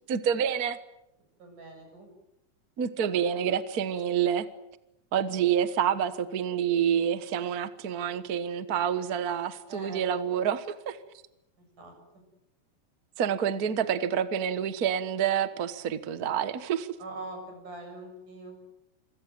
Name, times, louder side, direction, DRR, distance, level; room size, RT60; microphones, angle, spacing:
voice 1, 0.1-0.8 2.8-4.5 5.1-11.0 13.2-16.9, right 8 dB, 55° right, 12 dB, 1.0 m, -28 dB
voice 2, 1.4-2.1 9.7-10.0 11.6-11.9 17.0-18.5, right 2 dB, 75° right, 4 dB, 9.2 m, -42 dB
27.0 x 24.5 x 7.9 m, 0.83 s
omnidirectional pair, 3.7 m